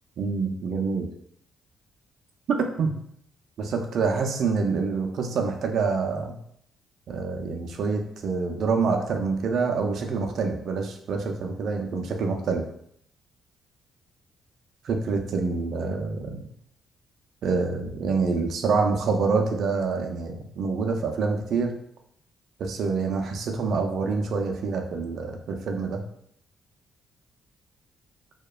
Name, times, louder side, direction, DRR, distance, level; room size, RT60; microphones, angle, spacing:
voice 1, 0.2-1.1 2.5-2.9 3.6-6.4 7.1-12.7 14.8-16.5 17.4-21.7 22.6-26.0, right 4 dB, 65° right, 3 dB, 0.4 m, -26 dB
2.8 x 2.1 x 2.3 m, 0.69 s
cardioid pair, 90°, 0 cm